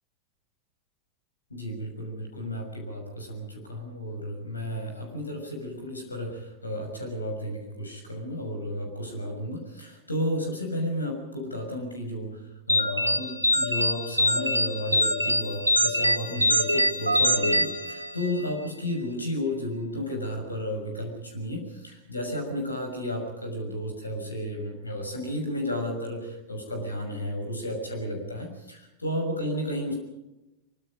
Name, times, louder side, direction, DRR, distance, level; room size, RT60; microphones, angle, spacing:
voice 1, 1.5-29.9, left 1 dB, 80° left, 4 dB, 6.3 m, -33 dB
sound 1, 12.7-18.5, equal, 85° right, 1.5 m, -24 dB
24.0 x 24.0 x 5.3 m, 0.94 s
figure-of-eight pair, 90°, 0 cm